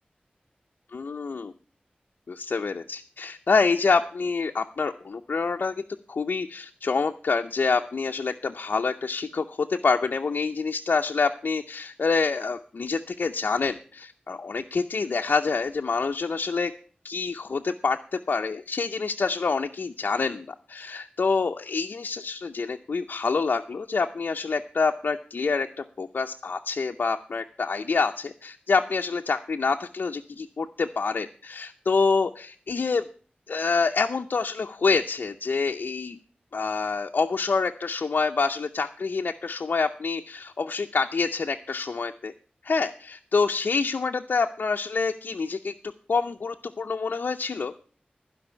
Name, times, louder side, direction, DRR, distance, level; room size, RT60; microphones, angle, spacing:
voice 1, 0.9-1.5 2.3-5.8 6.1-16.7 17.0-33.0 33.5-36.2 36.5-42.3 42.6-45.7 46.1-47.7, left 4 dB, 80° left, 4 dB, 0.6 m, -27 dB
15.0 x 5.3 x 8.1 m, 0.42 s
wide cardioid pair, 70°, 3 cm